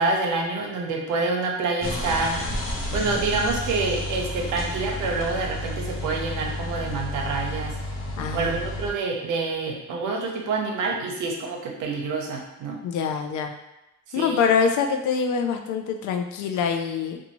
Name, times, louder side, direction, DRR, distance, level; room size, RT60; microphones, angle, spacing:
voice 1, 0.0-2.4 2.9-7.7 8.3-12.8 14.2-14.5, right 3 dB, 80° right, 0 dB, 0.7 m, -27 dB
sound 1, 1.8-8.9, left 1 dB, 45° left, 0.7 m, -31 dB
voice 2, 8.2-8.6 12.8-13.5 14.1-17.2, left 6 dB, 80° left, 5 dB, 0.4 m, -25 dB
2.6 x 2.3 x 2.9 m, 0.96 s
cardioid pair, 90°, 30 cm